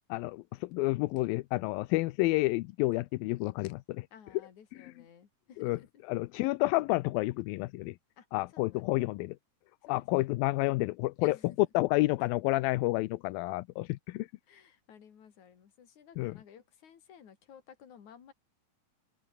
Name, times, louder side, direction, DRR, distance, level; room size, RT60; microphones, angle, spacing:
voice 1, 0.1-4.1 5.6-5.8 6.1-8.0 8.3-9.4 9.9-11.4 11.7-14.3 16.2-16.3, left 20 dB, 90° left, 2.5 m, -30 dB
voice 2, 4.1-5.9 8.2-9.0 9.8-10.1 11.2-11.6 14.5-18.3, left 8 dB, 55° left, 4.0 m, -55 dB
open air
omnidirectional pair, 4.1 m